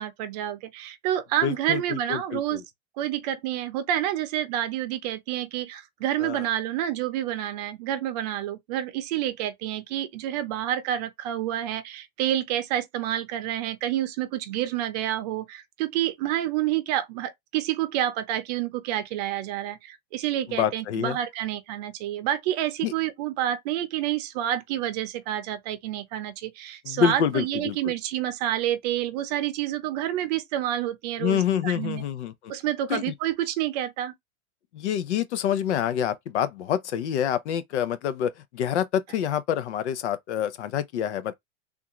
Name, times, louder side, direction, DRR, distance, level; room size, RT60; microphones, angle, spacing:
voice 1, 0.0-2.6 3.0-32.0 32.5-34.1, right 12 dB, 35° right, 0.7 m, -28 dB
voice 2, 1.4-2.6 6.2-6.4 20.5-21.2 22.8-22.9 26.8-27.9 31.2-32.5 32.9-33.1 34.7-41.3, left 9 dB, 80° left, 0.8 m, -27 dB
3.6 x 2.6 x 2.9 m
supercardioid pair, 165°, 34 cm